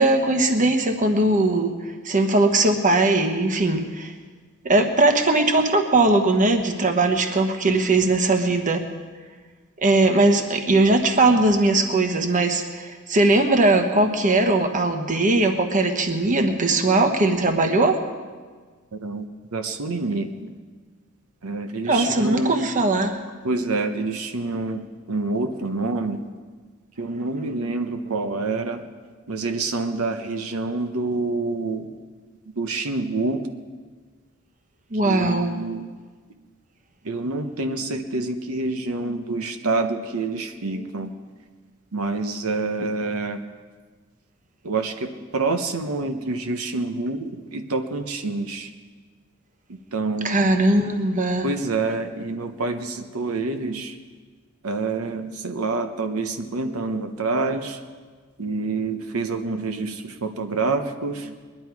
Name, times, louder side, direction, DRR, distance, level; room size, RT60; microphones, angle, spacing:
voice 1, 0.0-1.7 2.0-4.1 4.6-8.8 9.8-18.0 21.9-23.2 34.9-35.5 50.2-51.5, right 2 dB, 35° right, 5 dB, 1.2 m, -20 dB
voice 2, 18.9-19.3 19.5-20.5 21.4-22.6 23.4-26.2 27.0-28.8 29.3-31.9 32.6-33.5 35.0-35.9 37.0-41.1 41.9-43.4 44.6-48.7 49.7-50.5 51.4-54.0 54.6-57.8 58.4-61.3, right 3 dB, 85° right, 7 dB, 0.9 m, -27 dB
21.5 x 11.0 x 4.7 m, 1.5 s
head